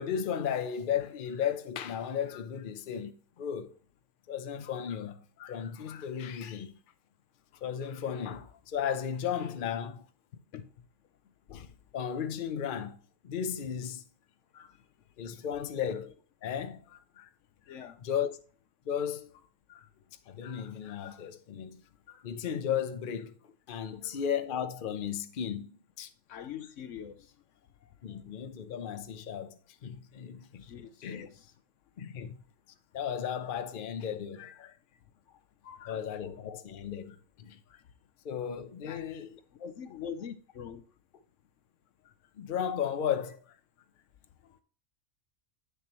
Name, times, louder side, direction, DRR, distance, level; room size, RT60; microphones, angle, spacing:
voice 1, 0.0-3.7 4.3-6.8 7.6-10.1 11.5-13.0 13.2-14.0 14.5-14.7 15.2-17.3 18.0-18.3 18.9-19.3 19.7-19.9 20.3-21.8 22.1-23.3 23.7-26.1 28.0-30.6 31.0-31.3 32.0-32.4 32.9-34.7 35.8-37.8 38.2-39.3 42.4-43.6, left 8 dB, 50° left, 0.8 m, -35 dB
voice 2, 26.3-27.2 28.1-28.2 30.6-31.3 35.6-35.9 38.8-39.0 39.6-40.8, left 8 dB, 70° left, 1.0 m, -43 dB
8.6 x 6.8 x 3.0 m
omnidirectional pair, 1.4 m